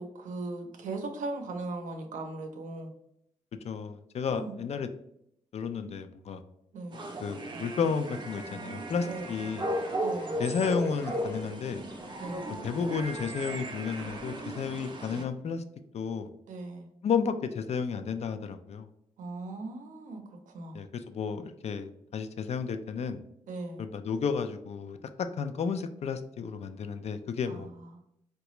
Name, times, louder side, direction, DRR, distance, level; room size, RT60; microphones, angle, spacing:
voice 1, 0.0-2.9 4.3-4.6 6.7-7.0 9.1-9.3 10.0-10.4 12.2-12.5 16.5-16.9 19.2-20.8 23.5-23.8 27.5-27.9, right 2 dB, 90° right, 4 dB, 0.6 m, -38 dB
voice 2, 3.6-4.9 5.5-6.4 7.2-9.7 10.4-11.8 12.6-15.6 15.9-16.3 17.0-18.9 20.7-23.2 23.8-25.0 25.4-27.7, left 6 dB, 55° left, 8 dB, 0.4 m, -32 dB
sound 1, 6.9-15.2, right 1 dB, 35° right, 0.5 m, -36 dB
sound 2, 9.1-14.6, left 1 dB, 20° left, 0.7 m, -53 dB
3.8 x 2.2 x 3.0 m, 0.76 s
cardioid pair, 80°, 13 cm